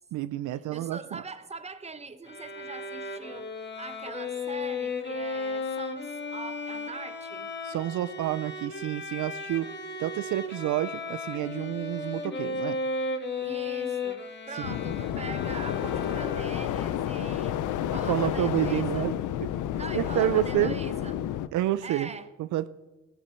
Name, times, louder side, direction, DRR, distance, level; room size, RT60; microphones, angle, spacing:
voice 1, 0.1-1.2 7.6-9.7 10.0-12.8 18.0-19.1 19.9-20.8 21.5-22.1 22.4-22.7, right 14 dB, 80° right, 14 dB, 0.6 m, -29 dB
voice 2, 0.7-7.5 13.4-17.6 17.9-19.1 19.7-21.2 21.8-22.3, right 4 dB, 20° right, 11 dB, 1.0 m, -42 dB
Bowed string instrument, 2.3-16.8, left 3 dB, 35° left, 2.0 m, -35 dB
sound 1, 14.6-21.5, left 11 dB, 80° left, 0.7 m, -30 dB
14.5 x 13.5 x 4.5 m, 1.1 s
cardioid pair, 90°, 30 cm